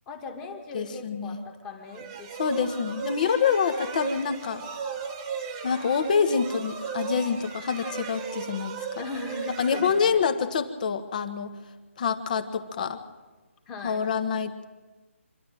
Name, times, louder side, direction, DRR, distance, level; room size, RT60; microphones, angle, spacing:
voice 1, 0.1-2.7 9.0-10.2 13.7-14.1, left 3 dB, 10° left, 3 dB, 1.9 m, -39 dB
voice 2, 0.7-1.4 2.4-4.6 5.6-8.9 9.6-11.5 12.0-13.0 13.8-14.6, left 6 dB, 35° left, 10 dB, 1.4 m, -26 dB
sound 1, 1.9-10.6, right 6 dB, 20° right, 1.5 m, -36 dB
26.5 x 11.5 x 9.1 m, 1.2 s
figure-of-eight pair, 160°, 7 cm